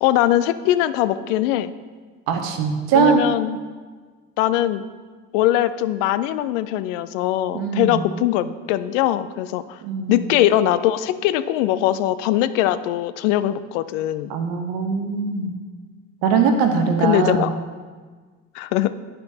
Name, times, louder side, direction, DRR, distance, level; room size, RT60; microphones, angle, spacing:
voice 1, 0.0-1.7 2.9-3.6 4.4-4.8 5.3-9.8 10.1-14.3 17.0-17.5 18.5-18.9, left 13 dB, 75° left, 13 dB, 0.5 m, -21 dB
voice 2, 2.3-3.2 7.5-8.0 9.8-10.2 14.3-15.6 16.2-17.5, right 6 dB, 70° right, 5 dB, 1.0 m, -21 dB
10.5 x 5.0 x 2.8 m, 1.5 s
hypercardioid pair, 50°, 37 cm